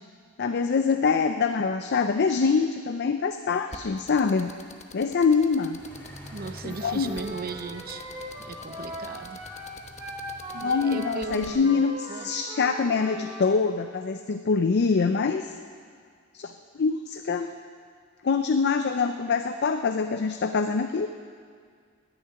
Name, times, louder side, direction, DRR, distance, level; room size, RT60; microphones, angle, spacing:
voice 1, 0.4-4.6 4.9-5.8 6.6-7.1 10.5-15.5 16.3-16.5 16.8-17.5 18.2-21.1, left 5 dB, 55° left, 8 dB, 0.5 m, -24 dB
sound 1, 3.7-11.5, left 4 dB, 35° left, 0.9 m, -45 dB
sound 2, 5.8-11.1, equal, 10° left, 2.7 m, -47 dB
voice 2, 6.3-8.0 8.4-9.4 10.6-11.8 12.1-12.3, right 3 dB, 50° right, 9 dB, 0.7 m, -37 dB
Wind instrument woodwind instrument, 6.6-13.4, right 1 dB, 20° right, 3.4 m, -39 dB
10.5 x 8.8 x 9.7 m, 2.1 s
head